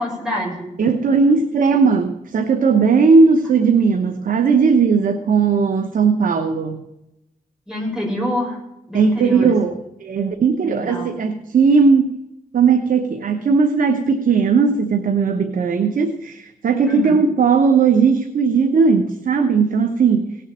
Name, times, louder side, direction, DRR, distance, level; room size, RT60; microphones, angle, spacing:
voice 1, 0.0-0.7 7.7-8.6 8.9-9.5 10.6-11.1 16.9-17.2, equal, 5° right, -2 dB, 6.8 m, -26 dB
voice 2, 0.8-6.8 8.9-9.7 10.0-12.1 12.5-20.4, right 5 dB, 85° right, 6 dB, 1.0 m, -17 dB
18.0 x 7.3 x 7.4 m, 0.89 s
wide cardioid pair, 85°, 14 cm